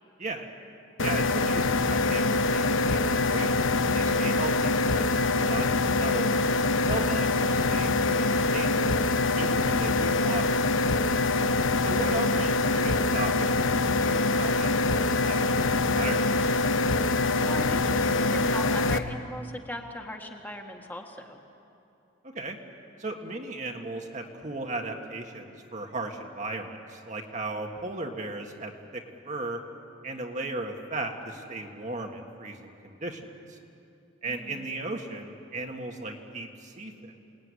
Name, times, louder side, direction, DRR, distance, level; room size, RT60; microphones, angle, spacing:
sound 1, 1.0-19.0, left 3 dB, 75° left, 1.0 m, -24 dB
voice 1, 1.0-3.7 3.9-6.5 6.8-9.0 9.4-10.6 11.8-16.5 22.2-22.6 23.0-29.6 30.0-33.6 34.2-37.1, right 2 dB, 35° right, 3 dB, 1.8 m, -36 dB
voice 2, 17.5-21.4 34.3-34.7, left 1 dB, 10° left, 1 dB, 1.8 m, -38 dB
27.5 x 19.0 x 9.8 m, 2.7 s
head